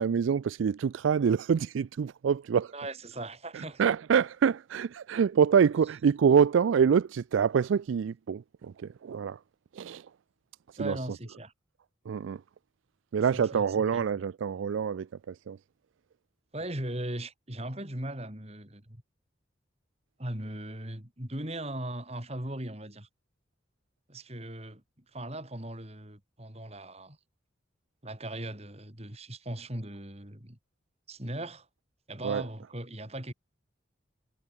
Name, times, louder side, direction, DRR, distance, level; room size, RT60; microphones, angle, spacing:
voice 1, 0.0-2.7 3.5-9.4 9.7-10.1 10.8-11.0 12.1-12.4 13.1-15.6 32.2-32.4, right 7 dB, 80° right, 0.4 m, -26 dB
voice 2, 2.7-3.9 10.8-11.5 13.3-14.0 16.5-19.0 20.2-23.1 24.1-24.8 25.1-27.2 28.0-30.6 31.1-31.7 32.1-33.3, right 1 dB, 30° right, 4.3 m, -38 dB
head